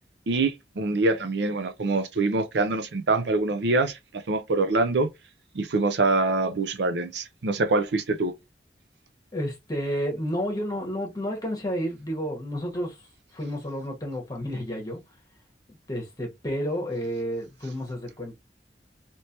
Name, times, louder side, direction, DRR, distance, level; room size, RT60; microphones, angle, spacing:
voice 1, 0.3-4.0 4.3-5.1 5.5-8.3, right 3 dB, 70° right, 0.5 m, -24 dB
voice 2, 9.3-13.0 13.3-15.0 15.9-18.3, equal, 20° left, 1.3 m, -31 dB
3.2 x 2.9 x 2.9 m
head